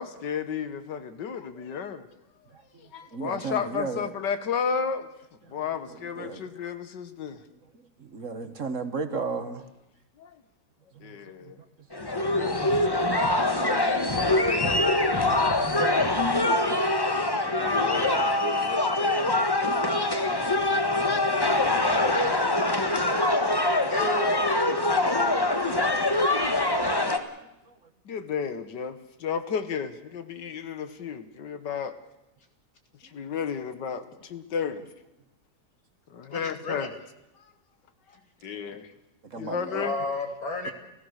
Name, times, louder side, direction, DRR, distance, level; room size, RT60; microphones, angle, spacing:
voice 1, 0.0-2.1 2.8-5.1 5.5-7.4 10.2-10.4 11.0-11.6 13.5-14.5 17.5-19.3 20.9-22.2 25.0-25.6 28.1-32.0 33.0-34.8 36.1-36.9 38.4-38.9 39.4-39.9, left 6 dB, 85° left, 11 dB, 1.9 m, -33 dB
voice 2, 3.1-4.1 5.9-6.5 8.0-9.6 10.9-11.2 12.0-12.8 14.4-14.5 16.2-17.2 19.4-19.6 20.1-20.2 20.7-21.7 22.3-23.0 23.5-23.9 26.4-26.6 27.7-27.8 33.2-33.3 39.2-39.9 40.6-40.7, right 4 dB, 50° right, 9 dB, 1.5 m, -37 dB
sound 1, 11.9-27.2, left 2 dB, 15° left, 1.1 m, -24 dB
voice 3, 23.9-24.3 24.9-25.0 36.3-36.9 38.1-38.2 38.7-38.8 39.6-40.7, left 2 dB, 55° left, 5 dB, 3.2 m, -33 dB
29.5 x 15.5 x 6.5 m, 0.93 s
omnidirectional pair, 1.8 m